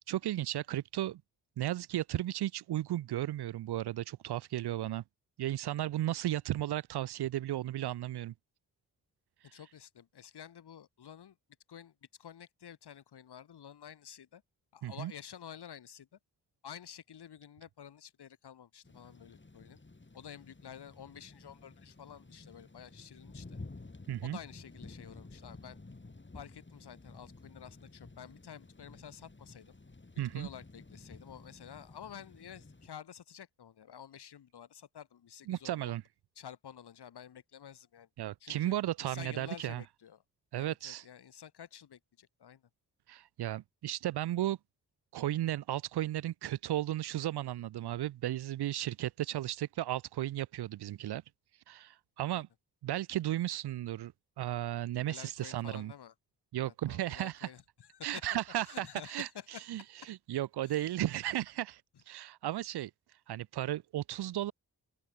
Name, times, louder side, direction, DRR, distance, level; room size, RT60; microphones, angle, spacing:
voice 1, 0.1-1.2 1.6-5.0 5.4-8.3 14.8-15.1 24.1-24.4 30.2-30.5 35.5-36.0 38.2-39.8 40.5-41.0 43.1-44.6 45.1-51.2 51.7-52.5 52.8-54.1 54.4-55.9 56.5-57.5 58.0-59.3 59.7-59.8 60.1-62.9 63.3-64.5, right 13 dB, 80° right, 0.6 m, -34 dB
voice 2, 9.4-11.4 11.7-14.4 14.7-16.2 16.6-19.8 20.1-23.6 24.2-25.8 26.3-29.8 30.3-35.9 36.4-38.1 38.4-40.2 40.5-42.6 52.3-52.4 55.1-56.1 56.6-58.2 58.7-59.9 60.7-60.9, left 9 dB, 85° left, 4.2 m, -50 dB
sound 1, 18.8-32.9, left 3 dB, 30° left, 3.3 m, -52 dB
open air
supercardioid pair, 40°, 39 cm